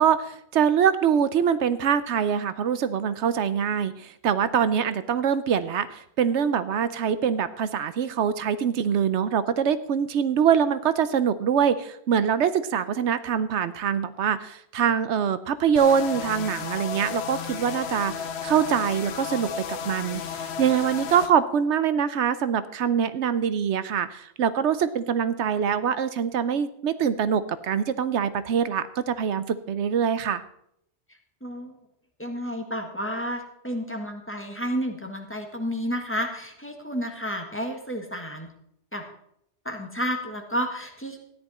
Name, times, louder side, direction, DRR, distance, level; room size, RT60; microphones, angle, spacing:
voice 1, 0.0-30.4, right 8 dB, 80° right, 13 dB, 1.0 m, -24 dB
sound 1, 15.8-21.3, left 7 dB, 70° left, 1.1 m, -33 dB
voice 2, 31.4-31.8 32.2-38.5 38.9-39.0 39.6-41.2, equal, 10° left, 3 dB, 1.5 m, -31 dB
13.0 x 10.5 x 4.2 m, 0.74 s
omnidirectional pair, 1.2 m